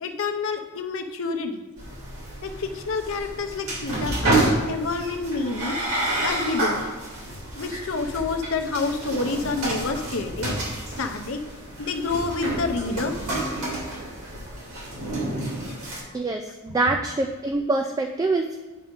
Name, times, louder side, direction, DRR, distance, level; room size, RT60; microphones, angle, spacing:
voice 1, 0.0-1.6 2.4-5.8 6.2-6.8 7.5-10.5 11.0-11.4 11.8-13.1, left 3 dB, 65° left, 6 dB, 0.7 m, -28 dB
sound 1, 1.8-16.0, right 1 dB, 85° right, 2.7 m, -29 dB
voice 2, 16.1-18.6, right 2 dB, 15° right, 4 dB, 0.3 m, -25 dB
9.8 x 3.7 x 5.1 m, 1.3 s
head